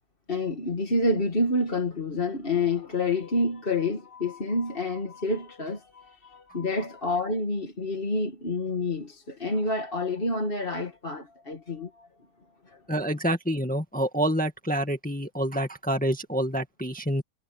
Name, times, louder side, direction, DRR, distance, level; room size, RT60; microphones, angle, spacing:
voice 1, 0.3-12.1 12.7-12.8, left 2 dB, 35° left, 2.2 m, -28 dB
voice 2, 12.9-17.2, right 1 dB, 5° left, 1.7 m, -27 dB
omnidirectional pair, 1.7 m